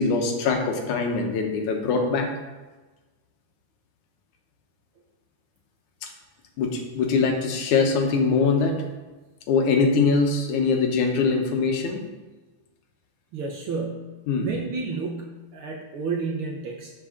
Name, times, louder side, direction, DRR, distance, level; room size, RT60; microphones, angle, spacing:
voice 1, 0.0-2.3 6.0-6.1 6.6-8.8 9.5-12.0 14.3-14.5, left 4 dB, 90° left, 3 dB, 2.5 m, -22 dB
voice 2, 13.3-16.9, right 4 dB, 70° right, 0 dB, 1.2 m, -31 dB
6.1 x 6.0 x 6.3 m, 1.2 s
omnidirectional pair, 3.3 m